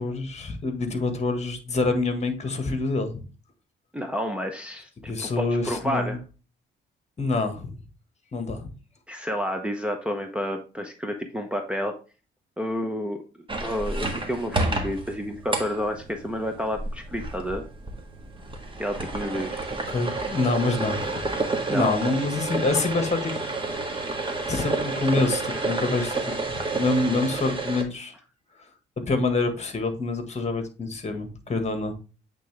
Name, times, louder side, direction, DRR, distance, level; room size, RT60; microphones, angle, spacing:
voice 1, 0.0-3.2 5.0-6.2 7.2-7.7 8.3-8.7 19.9-21.2 21.7-23.5 23.9-24.1 24.5-28.1 29.1-31.9, left 3 dB, 35° left, 7 dB, 1.8 m, -26 dB
voice 2, 3.9-6.2 9.1-11.9 12.6-13.2 13.6-17.6 18.8-19.7 21.7-21.9, equal, 5° right, 2 dB, 1.0 m, -30 dB
sound 1, 13.5-27.8, right 3 dB, 25° right, 1.7 m, -30 dB
8.4 x 3.6 x 3.4 m, 0.33 s
cardioid pair, 90°, 20 cm